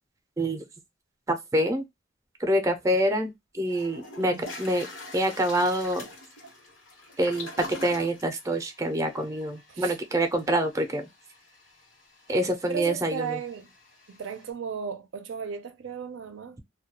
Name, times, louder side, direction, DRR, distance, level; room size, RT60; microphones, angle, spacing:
voice 1, 1.3-1.8 2.4-4.8 5.1-6.0 7.2-7.5 7.8-11.0 12.3-13.3, right 1 dB, 15° right, 0.5 m, -26 dB
Toilet flush, 3.2-3.3 3.7-14.5, left 2 dB, 85° left, 1.0 m, -46 dB
voice 2, 4.2-4.5 9.7-10.0 12.7-13.7 14.1-16.6, right 6 dB, 70° right, 0.4 m, -35 dB
2.2 x 2.2 x 2.8 m
head